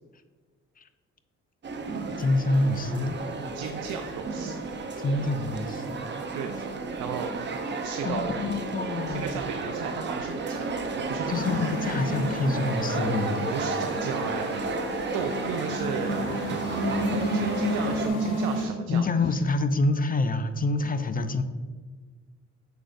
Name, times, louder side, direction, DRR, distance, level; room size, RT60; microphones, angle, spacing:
sound 1, 1.6-18.1, right 4 dB, 35° right, 0.7 m, -33 dB
voice 1, 2.2-3.2 5.0-6.0 8.0-9.4 11.3-13.5 18.9-21.4, left 2 dB, 30° left, 10 dB, 0.4 m, -27 dB
voice 2, 3.5-4.6 6.3-6.5 7.0-7.3 7.8-8.3 9.1-10.7 11.0-11.3 13.5-14.7 15.1-16.2 17.1-19.0, right 7 dB, 85° right, 5 dB, 0.5 m, -34 dB
sound 2, 11.3-18.6, equal, 90° left, 1.8 m, -31 dB
6.5 x 6.1 x 2.5 m, 1.5 s
cardioid pair, 90°, 30 cm